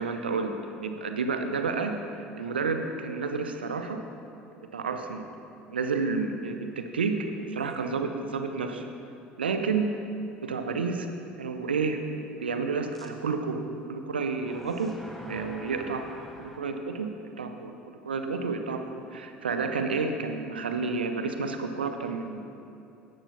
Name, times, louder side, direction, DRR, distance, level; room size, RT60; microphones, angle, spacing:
voice 1, 0.0-4.0 4.5-5.2 5.7-8.9 9.4-9.9 10.4-11.1 11.4-15.0 15.3-22.4, right 4 dB, 75° right, 6 dB, 0.7 m, -30 dB
sound 1, 7.7-7.8 8.4-8.5 12.9-13.1 14.3-16.6, left 1 dB, 5° left, 1.3 m, -46 dB
16.0 x 11.0 x 2.7 m, 2.7 s
figure-of-eight pair, 65°, 6 cm